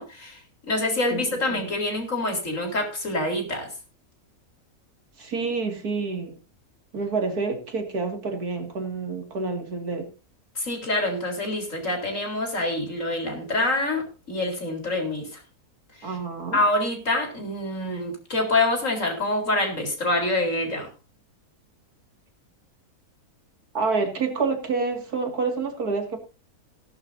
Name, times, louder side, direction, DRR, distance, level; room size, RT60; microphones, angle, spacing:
voice 1, 0.0-3.7 10.6-15.4 16.0-16.2 16.5-20.9, left 2 dB, 55° left, 3 dB, 4.4 m, -26 dB
voice 2, 5.2-6.4 6.9-10.1 16.0-16.6 23.7-26.2, right 4 dB, 75° right, 5 dB, 2.9 m, -28 dB
17.5 x 11.5 x 2.7 m, 0.33 s
omnidirectional pair, 1.6 m